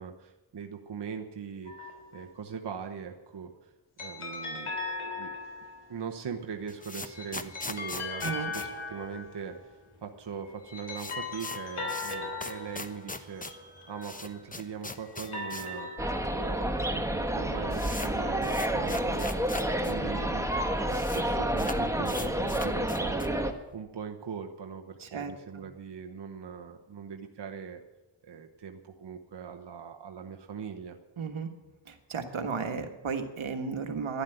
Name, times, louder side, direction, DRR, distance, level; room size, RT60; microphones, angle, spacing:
voice 1, 0.0-3.7 4.0-4.7 5.2-5.3 5.9-15.9 16.3-19.4 19.9-23.5 23.7-27.8 28.2-31.0, right 6 dB, 55° right, 3 dB, 1.1 m, -41 dB
sound 1, 1.7-2.4 4.0-5.9 6.9-9.7 10.4-14.5 15.1-16.7, left 3 dB, 90° left, 3.2 m, -39 dB
sound 2, 6.4-9.7 9.9-10.0 10.3-10.4 10.6-15.8 16.1-16.2 16.9-17.0 17.2-19.9 20.2-20.3 20.5-21.2 21.5-23.4, left 2 dB, 15° left, 0.9 m, -41 dB
voice 2, 8.2-8.5 25.0-25.6 31.2-31.5 31.9-34.2, right 5 dB, 75° right, 6 dB, 1.7 m, -34 dB
sound 3, 16.0-23.5, right 1 dB, 5° right, 1.3 m, -29 dB
11.5 x 11.0 x 9.2 m, 1.1 s
wide cardioid pair, 80°, 49 cm